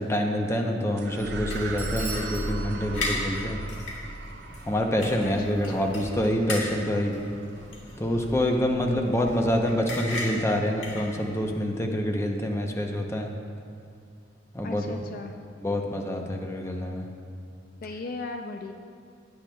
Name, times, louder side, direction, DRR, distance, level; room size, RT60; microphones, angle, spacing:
voice 1, 0.0-3.6 4.7-7.2 8.0-13.3 14.5-15.0 15.6-17.1, left 1 dB, 15° left, 2 dB, 0.7 m, -26 dB
sound 1, 1.0-9.6, right 2 dB, 65° right, 0.5 m, -38 dB
sound 2, 1.5-11.5, left 2 dB, 75° left, 1.8 m, -37 dB
Bell / Doorbell, 1.8-3.6, right 3 dB, 10° right, 1.7 m, -41 dB
voice 2, 5.3-5.9 14.6-15.3 17.8-18.7, left 3 dB, 50° left, 4 dB, 0.5 m, -37 dB
16.0 x 8.5 x 2.3 m, 2.3 s
head